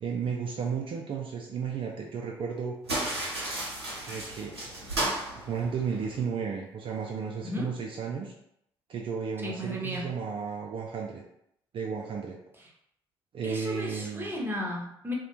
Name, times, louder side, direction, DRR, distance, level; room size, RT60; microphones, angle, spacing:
voice 1, 0.0-2.8 4.1-4.5 5.4-8.3 8.9-11.2 11.7-12.4 13.3-14.3, right 6 dB, 45° right, 0 dB, 0.4 m, -33 dB
sound 1, 2.8-6.2, right 2 dB, 90° right, 0.6 m, -34 dB
voice 2, 9.4-10.1 13.4-15.1, left 1 dB, 15° right, -1 dB, 0.8 m, -34 dB
2.4 x 2.1 x 2.9 m, 0.76 s
figure-of-eight pair, 45°, 13 cm